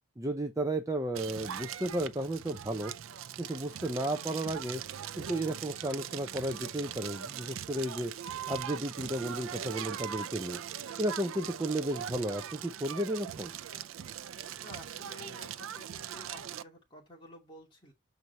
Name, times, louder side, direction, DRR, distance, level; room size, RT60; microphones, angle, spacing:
voice 1, 0.2-2.9 3.4-4.8 5.2-8.1 8.5-10.6 11.0-13.5, right 1 dB, 15° right, 0.6 m, -33 dB
Crackle, 1.1-16.6, right 9 dB, 90° right, 0.5 m, -41 dB
voice 2, 14.6-17.9, left 2 dB, 25° left, 2.7 m, -52 dB
6.7 x 4.6 x 4.0 m
head